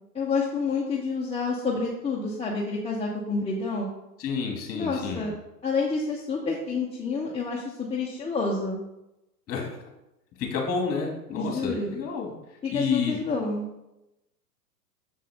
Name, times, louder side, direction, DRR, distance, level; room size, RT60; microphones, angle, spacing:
voice 1, 0.1-3.9 4.7-5.3 5.6-8.8 11.3-11.9 12.6-13.6, left 4 dB, 10° left, -4 dB, 1.1 m, -28 dB
voice 2, 4.2-5.3 9.5-9.7 10.4-12.3 12.7-13.2, left 5 dB, 30° left, 1 dB, 2.6 m, -29 dB
7.3 x 7.1 x 3.8 m, 0.90 s
hypercardioid pair, 105°, 49 cm